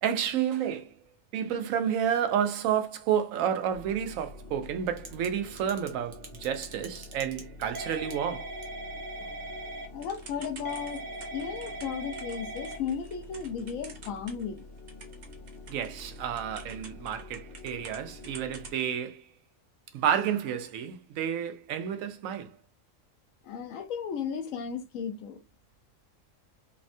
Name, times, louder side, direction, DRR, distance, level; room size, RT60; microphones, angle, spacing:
voice 1, 0.0-0.9 1.3-8.5 15.7-19.2 19.9-22.5, right 9 dB, 85° right, 1.0 m, -30 dB
sound 1, 3.7-18.7, left 2 dB, 55° left, 0.8 m, -47 dB
Typing / Telephone, 4.9-5.3 5.6-14.6 14.9-18.0 18.2-18.8, right 2 dB, 45° right, 0.6 m, -41 dB
voice 2, 9.9-11.0 11.3-14.6 23.4-25.4, left 7 dB, 85° left, 1.0 m, -35 dB
3.4 x 2.1 x 2.5 m
omnidirectional pair, 1.3 m